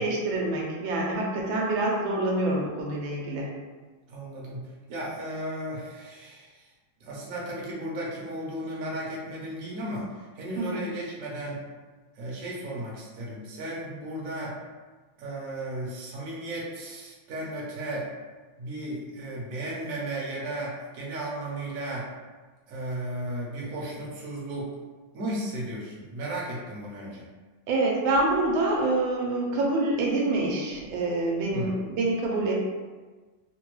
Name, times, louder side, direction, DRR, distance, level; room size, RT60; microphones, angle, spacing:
voice 1, 0.0-3.5 10.6-10.8 27.7-32.5, right 2 dB, 80° right, -2 dB, 1.4 m, -26 dB
voice 2, 4.1-6.7 7.0-11.6 12.2-14.6 15.2-18.1 18.6-22.1 22.7-24.7 25.1-27.2 31.5-31.9, right 1 dB, 60° right, -4 dB, 1.0 m, -35 dB
3.4 x 2.2 x 3.0 m, 1.3 s
omnidirectional pair, 2.1 m